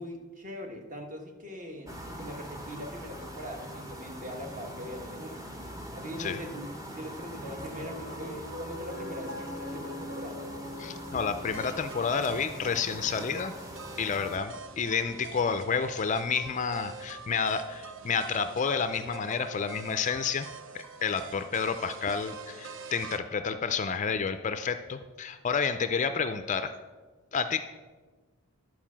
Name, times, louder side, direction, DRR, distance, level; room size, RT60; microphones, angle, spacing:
voice 1, 0.0-5.5 5.9-10.4, equal, 35° right, 2 dB, 1.4 m, -41 dB
sound 1, 1.8-14.4, equal, 15° right, 0.9 m, -43 dB
Piano, 7.3-17.8, left 1 dB, 85° right, 2.1 m, -45 dB
voice 2, 10.8-13.5 14.0-20.5 20.7-26.7 27.3-27.6, left 5 dB, 35° left, 10 dB, 0.4 m, -30 dB
sound 2, 11.4-23.2, right 5 dB, 55° right, 0.5 m, -46 dB
11.0 x 4.7 x 7.3 m, 1.3 s
head